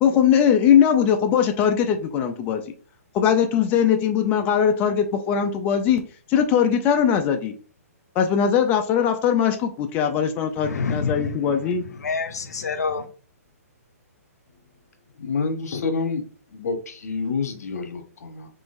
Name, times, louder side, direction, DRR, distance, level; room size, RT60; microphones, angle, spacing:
voice 1, 0.0-2.6 3.1-6.0 6.3-7.5 8.2-11.8, left 8 dB, 20° left, 0.4 m, -20 dB
voice 2, 10.6-13.1, left 5 dB, 90° left, 0.7 m, -28 dB
voice 3, 15.2-16.2 16.5-18.5, left 4 dB, 75° left, 1.1 m, -28 dB
3.9 x 3.7 x 2.5 m
hypercardioid pair, 150°, 9 cm